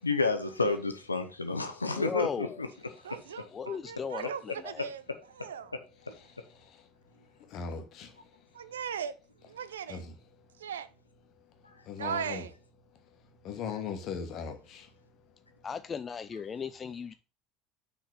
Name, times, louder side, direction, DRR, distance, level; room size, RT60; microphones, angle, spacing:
voice 1, 0.0-2.7 3.1-3.2, left 3 dB, 85° left, 0.7 m, -30 dB
voice 2, 2.0-2.6 3.5-4.8 15.6-17.1, left 6 dB, 30° left, 0.3 m, -36 dB
voice 3, 3.0-5.0 5.3-5.7 6.1-6.2 8.5-9.1 9.4-10.0 10.6-10.9 12.0-12.5, right 8 dB, 75° right, 0.5 m, -38 dB
voice 4, 7.5-8.1 9.9-10.1 11.8-12.4 13.4-14.9, left 6 dB, 50° left, 1.4 m, -38 dB
6.1 x 4.0 x 6.0 m
figure-of-eight pair, 65°, 0 cm